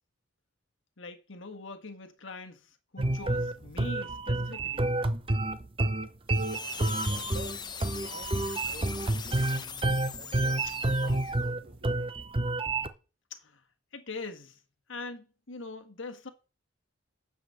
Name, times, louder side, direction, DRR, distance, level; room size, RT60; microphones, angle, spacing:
voice 1, 1.0-4.9 13.3-13.6 13.9-14.6 14.9-16.3, left 3 dB, 70° left, 1.4 m, -42 dB
sound 1, 3.0-12.9, right 2 dB, 25° right, 0.7 m, -29 dB
sound 2, 6.3-11.5, left 6 dB, 20° left, 0.9 m, -41 dB
voice 2, 6.6-7.6 7.9-9.6 10.1-10.6 11.0-12.3, right 2 dB, 55° right, 2.1 m, -50 dB
10.0 x 5.0 x 6.8 m
head